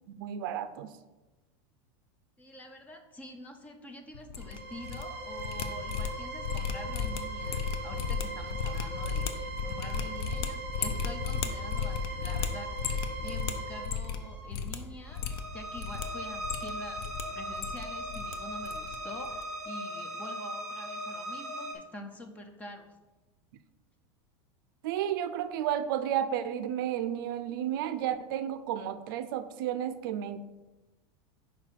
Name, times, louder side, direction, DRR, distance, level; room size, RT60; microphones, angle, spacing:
voice 1, 0.2-0.9 24.8-30.4, right 10 dB, 55° right, 12 dB, 0.4 m, -32 dB
voice 2, 2.4-23.0, left 1 dB, 10° left, 5 dB, 0.5 m, -47 dB
sound 1, 4.1-5.0 5.3-14.2 14.5-14.8 15.1-16.0 16.4-17.2 17.5-18.3 18.6-19.0 19.2-19.4, left 6 dB, 65° left, 0.7 m, -34 dB
sound 2, 4.4-21.7, right 1 dB, 10° right, 1.1 m, -39 dB
5.2 x 4.5 x 5.7 m, 1.1 s
supercardioid pair, 175°, 13 cm